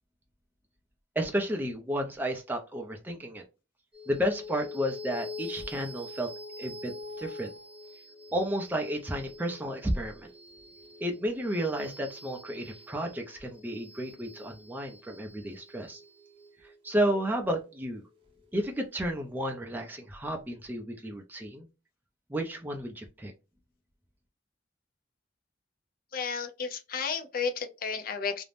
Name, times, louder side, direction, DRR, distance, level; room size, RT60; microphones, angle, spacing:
voice 1, 1.2-3.4 4.1-6.3 6.6-7.5 8.3-10.3 11.0-16.0 16.8-18.0 18.5-21.7 22.3-23.3, equal, 10° right, 0.4 m, -32 dB
sound 1, 3.9-18.7, left 3 dB, 30° right, 0.9 m, -45 dB
voice 2, 26.1-28.4, left 5 dB, 50° left, 0.5 m, -32 dB
2.5 x 2.0 x 3.2 m
head